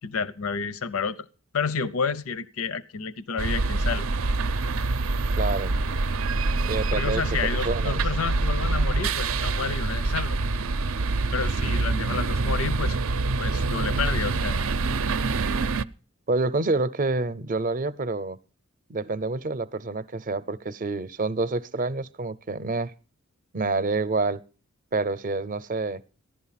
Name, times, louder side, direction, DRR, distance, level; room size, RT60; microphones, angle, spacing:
voice 1, 0.0-1.3 1.5-4.0 6.9-10.4 11.3-13.0 13.4-14.6, left 5 dB, 85° left, 0.7 m, -30 dB
sound 1, 3.4-15.8, right 3 dB, 80° right, 0.6 m, -25 dB
voice 2, 5.4-5.7 6.6-7.2 7.6-8.0 16.3-18.4 18.9-22.9 23.5-24.4 24.9-26.0, right 3 dB, 40° right, 0.6 m, -27 dB
15.5 x 11.0 x 5.8 m
head